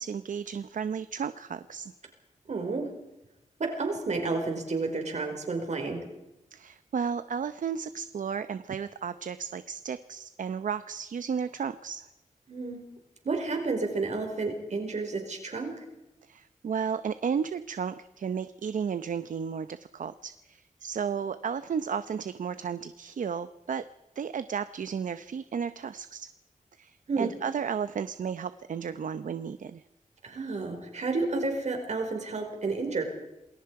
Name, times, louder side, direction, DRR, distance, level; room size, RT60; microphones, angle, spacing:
voice 1, 0.0-1.9 6.5-12.0 16.3-23.8 24.2-26.3 26.8-29.8, right 7 dB, 75° right, 12 dB, 0.7 m, -33 dB
voice 2, 2.5-2.9 3.6-6.1 12.5-12.8 13.2-15.8 27.1-27.3 30.2-33.1, right 3 dB, 60° right, 4 dB, 5.0 m, -31 dB
28.0 x 20.5 x 4.8 m, 0.97 s
wide cardioid pair, 175°, 13 cm